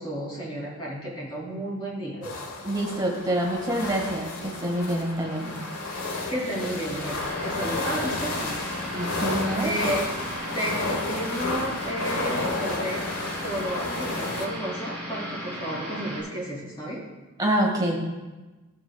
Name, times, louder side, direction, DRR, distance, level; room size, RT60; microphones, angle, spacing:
voice 1, 0.0-2.2 6.3-8.6 9.6-13.1 13.4-17.0, right 1 dB, 25° left, -5 dB, 2.8 m, -32 dB
sound 1, 2.2-14.5, left 3 dB, 80° left, 1.3 m, -32 dB
voice 2, 2.6-5.6 8.9-9.7 17.4-18.0, right 1 dB, 20° right, -2 dB, 1.7 m, -26 dB
sound 2, 2.7-16.2, equal, 10° left, 3.2 m, -37 dB
16.0 x 7.4 x 2.3 m, 1.2 s
head